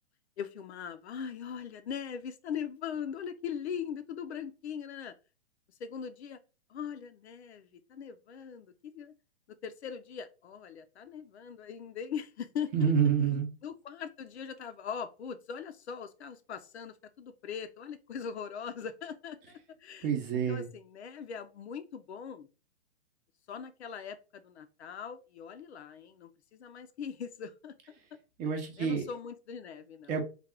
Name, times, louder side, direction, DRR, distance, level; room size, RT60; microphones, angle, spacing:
voice 1, 0.4-5.1 5.8-6.4 6.7-9.1 9.6-12.9 13.6-22.5 23.5-27.7 28.8-30.2, left 7 dB, 75° left, 0.6 m, -41 dB
voice 2, 12.7-13.5 20.0-20.7 28.4-29.1 30.1-30.2, right 7 dB, 25° right, 0.7 m, -28 dB
3.4 x 2.4 x 3.6 m
hypercardioid pair, 130°, 34 cm